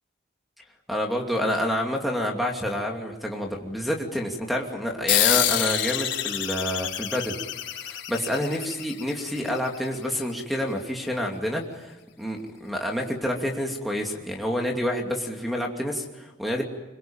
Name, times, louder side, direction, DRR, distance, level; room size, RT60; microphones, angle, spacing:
voice 1, 0.9-7.4 7.8-16.6, equal, ahead, 1 dB, 2.6 m, -28 dB
sound 1, 5.1-10.0, left 12 dB, 70° left, 3.7 m, -27 dB
26.0 x 23.5 x 8.9 m, 1.0 s
head